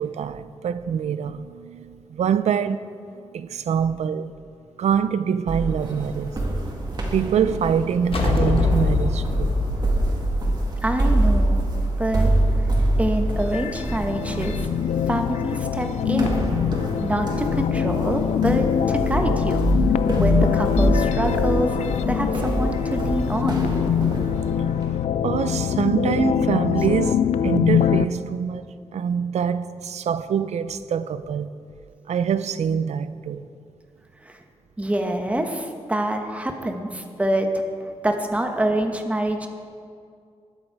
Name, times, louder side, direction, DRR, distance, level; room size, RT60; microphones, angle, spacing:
voice 1, 0.0-2.8 3.1-4.3 4.8-6.4 7.1-9.6 25.2-31.5 32.1-33.5, right 7 dB, 75° right, 0.5 m, -25 dB
sound 1, 5.5-25.0, right 1 dB, 40° right, 2.0 m, -25 dB
sound 2, 8.1-11.6, left 3 dB, 55° left, 1.5 m, -23 dB
voice 2, 10.8-11.7 12.0-12.3 13.0-14.7 15.1-16.4 17.0-19.6 20.0-21.7 22.1-23.7 34.2-34.4 34.8-39.5, right 1 dB, 10° right, 1.1 m, -26 dB
sound 3, 13.4-28.0, left 9 dB, 85° left, 0.4 m, -23 dB
20.5 x 7.3 x 4.7 m
wide cardioid pair, 120°, 11 cm